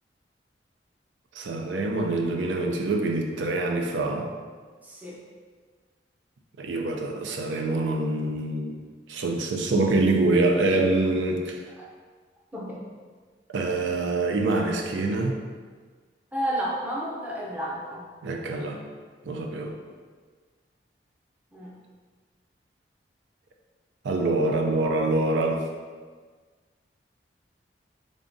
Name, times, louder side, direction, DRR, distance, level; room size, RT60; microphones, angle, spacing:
voice 1, 1.3-4.3 6.6-11.6 13.5-15.4 18.2-18.8 19.3-19.7 24.0-25.6, right 2 dB, 90° right, 2 dB, 0.4 m, -25 dB
voice 2, 4.8-5.2 11.8-11.9 12.5-12.8 16.3-18.1 21.5-21.7, right 1 dB, 10° right, -5 dB, 0.6 m, -31 dB
3.8 x 3.5 x 2.6 m, 1.5 s
head